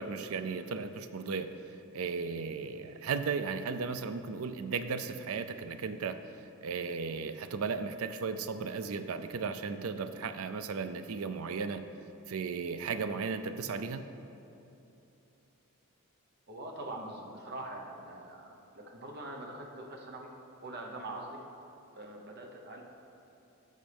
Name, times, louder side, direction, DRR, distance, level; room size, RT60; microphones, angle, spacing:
voice 1, 0.0-6.2 6.6-11.8 12.3-14.0, right 5 dB, 75° right, 10 dB, 0.5 m, -35 dB
voice 2, 16.5-20.3 20.6-21.4 21.9-22.8, right 1 dB, 50° right, 1 dB, 1.0 m, -43 dB
14.5 x 5.4 x 3.5 m, 2.8 s
head